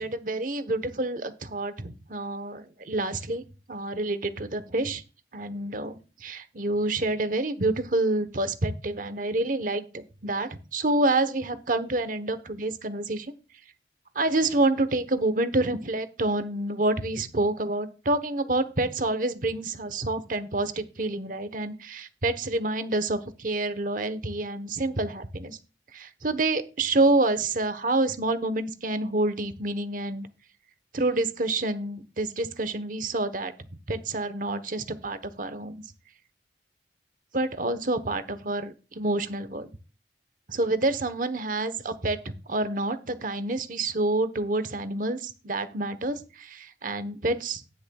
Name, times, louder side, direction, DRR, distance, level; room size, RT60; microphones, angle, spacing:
voice 1, 0.0-5.0 5.3-13.3 14.1-25.6 25.9-30.3 30.9-33.5 33.9-35.8 37.3-39.7 40.5-47.6, right 2 dB, 50° right, 12 dB, 1.1 m, -28 dB
18.5 x 6.5 x 2.4 m, 0.33 s
head